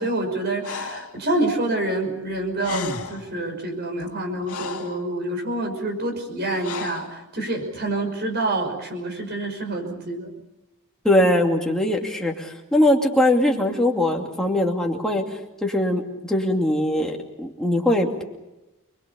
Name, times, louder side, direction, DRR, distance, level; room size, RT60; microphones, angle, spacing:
voice 1, 0.0-10.3, right 2 dB, 45° right, 3 dB, 5.7 m, -27 dB
Breathing, 0.6-1.1 2.3-2.4 2.6-3.3 4.0-5.0 6.6-7.1, left 5 dB, 75° left, 2.1 m, -33 dB
voice 2, 11.0-15.2 15.6-18.2, left 1 dB, 5° left, 0 dB, 2.5 m, -21 dB
28.5 x 21.5 x 7.0 m, 1.0 s
head